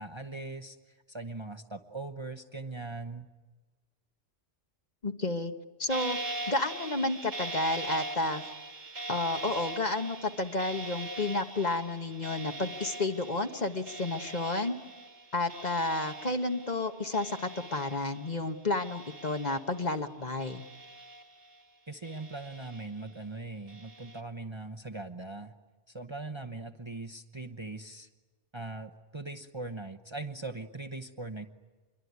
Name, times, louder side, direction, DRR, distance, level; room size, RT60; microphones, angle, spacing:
voice 1, 0.0-3.3 21.9-25.5 25.9-28.1 28.5-31.5, right 3 dB, 25° right, 6 dB, 1.0 m, -40 dB
voice 2, 5.0-5.5 5.8-6.2 6.5-8.5 9.1-14.8 15.3-20.6, left 2 dB, 40° left, 6 dB, 1.3 m, -31 dB
sound 1, 5.9-18.5 18.8-20.0 20.4-21.6 22.0-23.1 23.7-24.2, right 2 dB, 75° right, 2.4 m, -42 dB
26.5 x 22.5 x 9.6 m, 1.3 s
omnidirectional pair, 1.2 m